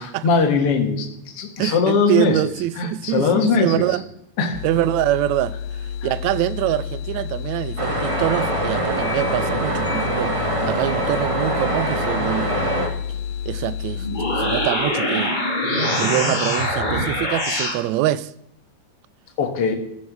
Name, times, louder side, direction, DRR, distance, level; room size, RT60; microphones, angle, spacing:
voice 1, 0.0-2.4 2.8-4.0 4.4-4.6 6.0-6.1 19.4-19.7, left 5 dB, 55° left, 2.3 m, -21 dB
voice 2, 1.6-4.0 4.6-12.7 13.5-14.1 14.4-15.4 15.9-18.3, right 14 dB, 80° right, 1.7 m, -24 dB
sound 1, 4.5-14.7, left 7 dB, 80° left, 2.0 m, -30 dB
sound 2, 7.8-12.9, right 1 dB, 25° right, 0.6 m, -24 dB
sound 3, 14.0-17.8, left 1 dB, 15° left, 1.8 m, -23 dB
14.5 x 7.1 x 6.1 m
omnidirectional pair, 3.5 m